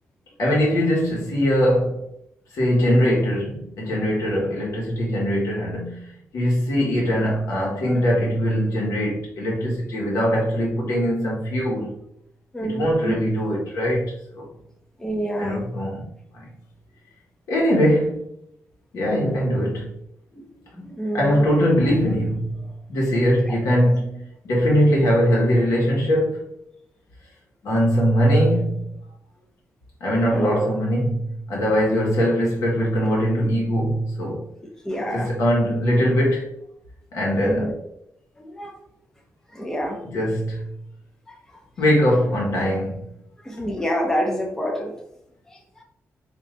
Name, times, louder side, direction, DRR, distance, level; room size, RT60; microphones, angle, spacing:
voice 1, 0.4-2.0 2.5-11.9 12.6-14.5 15.4-16.1 16.3-16.5 17.5-18.3 18.9-19.9 21.1-26.4 27.6-28.8 30.0-34.4 35.1-36.5 37.1-37.8 40.0-40.6 41.8-43.1, equal, 75° left, -3 dB, 1.5 m, -21 dB
voice 2, 12.5-13.2 15.0-15.7 20.3-20.4 20.7-21.5 23.5-23.6 30.3-30.6 34.8-35.3 37.4-37.7 38.4-38.8 39.5-40.0 41.3-41.6 43.4-44.9 45.5-45.8, equal, 10° left, 1 dB, 0.6 m, -28 dB
3.8 x 2.9 x 3.2 m, 0.78 s
cardioid pair, 125°, 5 cm